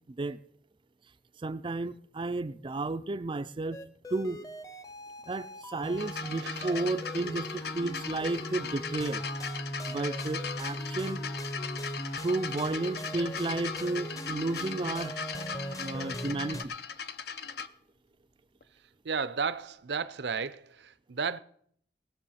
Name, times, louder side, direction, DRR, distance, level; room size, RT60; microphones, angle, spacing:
voice 1, 0.1-0.4 1.4-3.8 4.1-4.4 5.3-9.2 9.9-11.2 12.2-15.1 15.8-16.7, right 2 dB, 30° right, 0.4 m, -32 dB
sound 1, 3.7-16.6, equal, 20° left, 0.8 m, -39 dB
sound 2, 6.0-17.7 18.6-18.7, left 6 dB, 65° left, 0.7 m, -39 dB
voice 2, 6.4-6.7 19.0-21.4, right 5 dB, 70° right, 0.6 m, -33 dB
19.0 x 7.0 x 5.7 m
head